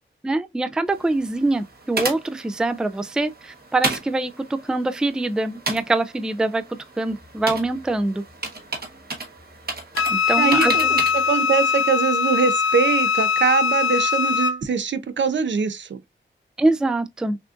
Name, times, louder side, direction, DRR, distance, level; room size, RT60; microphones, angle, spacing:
voice 1, 0.2-6.6 7.0-8.2 10.1-11.0 16.6-17.4, right 2 dB, 5° right, 0.3 m, -24 dB
sound 1, 0.9-11.3, right 3 dB, 50° right, 1.3 m, -33 dB
Wind instrument woodwind instrument, 10.0-14.6, left 6 dB, 90° left, 0.5 m, -21 dB
voice 2, 10.4-16.0, right 6 dB, 65° right, 0.5 m, -23 dB
5.9 x 2.5 x 2.4 m
wide cardioid pair, 105°, 20 cm